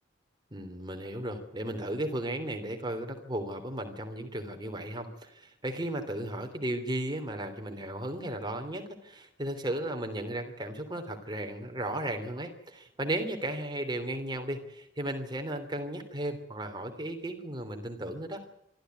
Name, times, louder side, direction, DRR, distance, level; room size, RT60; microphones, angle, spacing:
voice 1, 0.5-18.4, right 1 dB, 25° right, 5 dB, 3.2 m, -35 dB
24.5 x 13.5 x 9.3 m, 0.76 s
head